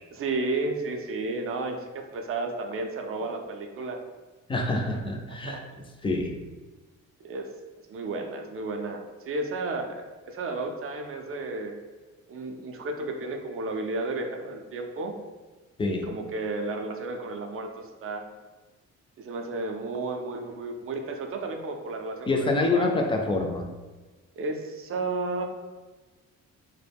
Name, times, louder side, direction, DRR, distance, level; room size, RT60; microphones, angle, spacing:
voice 1, 0.1-4.0 5.3-5.6 7.2-7.5 7.9-11.8 12.3-15.1 15.9-18.3 19.2-22.9 24.4-25.4, right 3 dB, 50° right, 4 dB, 0.4 m, -33 dB
voice 2, 4.5-5.6 6.0-6.3 15.8-16.1 22.3-23.6, left 2 dB, 20° left, 2 dB, 0.4 m, -26 dB
2.2 x 2.1 x 3.3 m, 1.2 s
cardioid pair, 90°, 30 cm